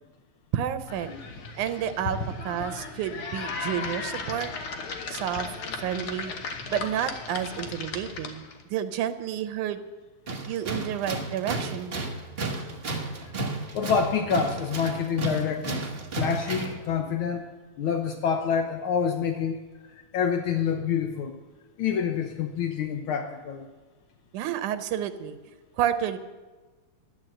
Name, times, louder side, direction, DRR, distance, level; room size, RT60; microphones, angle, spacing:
voice 1, 0.5-1.1 1.6-4.5 5.1-5.5 5.8-6.3 6.7-8.4 8.7-9.8 10.4-12.0 24.3-25.4 25.8-26.2, right 10 dB, 90° right, 10 dB, 2.4 m, -30 dB
sound 1, 0.9-8.6, left 4 dB, 55° left, 1.7 m, -36 dB
Tools, 10.3-16.8, right 2 dB, 60° right, 0.6 m, -32 dB
voice 2, 13.7-15.9 16.2-17.4 17.8-19.6 19.8-21.3 21.8-23.7, left 7 dB, 75° left, 5 dB, 1.2 m, -27 dB
13.0 x 10.5 x 7.7 m, 1.3 s
omnidirectional pair, 3.4 m